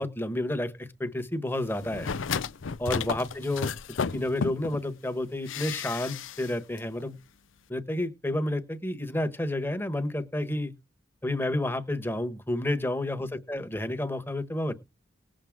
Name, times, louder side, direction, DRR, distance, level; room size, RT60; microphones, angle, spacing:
voice 1, 0.0-2.1 2.8-7.2 7.7-10.7 11.2-14.7, left 1 dB, 10° left, 9 dB, 1.3 m, -30 dB
sound 1, 1.8-4.8 5.5-6.5 6.8-6.9, left 6 dB, 85° left, 0.6 m, -33 dB
20.0 x 7.6 x 3.7 m, 0.26 s
head